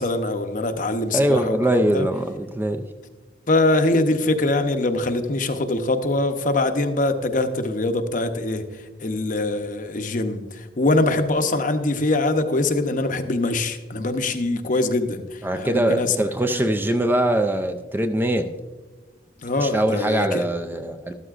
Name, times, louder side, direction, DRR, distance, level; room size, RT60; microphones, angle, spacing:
voice 1, 0.0-2.1 3.5-8.6 9.0-16.1 16.5-16.6 19.4-20.5, left 2 dB, 45° left, 7 dB, 0.8 m, -23 dB
voice 2, 1.1-2.9 15.4-18.5 19.6-21.1, right 1 dB, 10° right, 7 dB, 0.4 m, -22 dB
12.5 x 12.5 x 2.5 m, 1.2 s
head